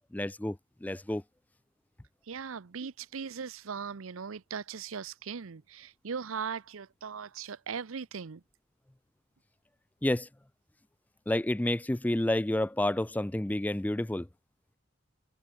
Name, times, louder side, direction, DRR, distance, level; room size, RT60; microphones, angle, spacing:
voice 1, 0.1-1.2 10.0-10.3 11.3-14.3, left 1 dB, 10° left, 0.4 m, -29 dB
voice 2, 2.3-8.4, right 6 dB, 85° right, 0.7 m, -39 dB
head